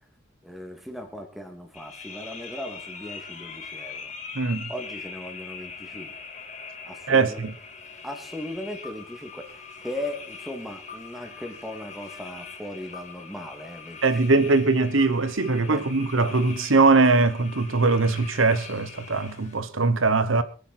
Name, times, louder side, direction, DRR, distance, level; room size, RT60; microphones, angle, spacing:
voice 1, 0.4-4.1 4.7-6.1 6.8-7.4 8.0-14.2 15.6-15.8, left 1 dB, ahead, 2.5 m, -38 dB
sound 1, 1.7-19.6, left 5 dB, 35° left, 2.8 m, -42 dB
voice 2, 4.3-4.7 7.1-7.5 14.0-20.4, right 3 dB, 80° right, 1.1 m, -21 dB
22.5 x 10.0 x 4.4 m
head